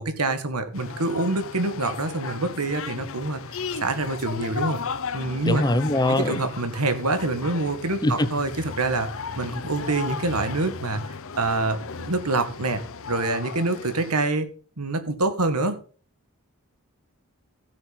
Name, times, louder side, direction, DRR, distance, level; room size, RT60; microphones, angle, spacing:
voice 1, 0.0-3.4 3.8-4.8 5.1-5.6 6.1-9.1 9.4-11.0 11.4-12.8 13.1-14.5 14.8-15.8, right 2 dB, 85° right, 1.8 m, -26 dB
sound 1, 0.7-14.1, left 5 dB, 65° left, 0.8 m, -35 dB
voice 2, 5.5-6.4 8.0-8.3, left 1 dB, 20° left, 0.8 m, -22 dB
15.5 x 6.8 x 4.0 m
head